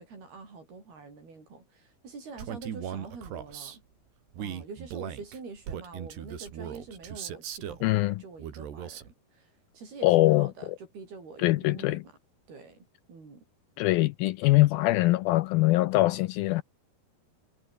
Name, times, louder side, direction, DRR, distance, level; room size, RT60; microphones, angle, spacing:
voice 1, 0.0-3.8 4.4-12.2 12.5-13.4, right 4 dB, 70° right, 9.9 m, -46 dB
Male speech man speaking, 2.4-3.8 4.3-7.9 8.4-9.1, right 9 dB, 85° right, 4.9 m, -38 dB
voice 2, 7.8-8.2 10.0-10.5 11.4-12.0 13.8-16.6, left 18 dB, 80° left, 2.2 m, -23 dB
omnidirectional pair, 4.7 m